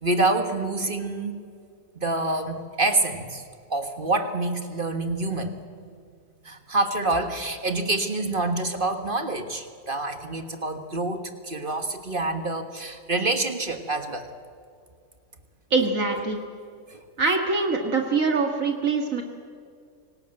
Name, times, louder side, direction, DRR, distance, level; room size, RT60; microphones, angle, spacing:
voice 1, 0.0-1.4 1.9-3.4 3.7-5.6 6.4-14.3 16.9-17.0, right 2 dB, 35° right, 7 dB, 1.6 m, -27 dB
voice 2, 15.7-16.4 17.2-19.2, right 4 dB, 60° right, 3 dB, 2.1 m, -23 dB
25.5 x 18.5 x 7.8 m, 2.3 s
omnidirectional pair, 1.6 m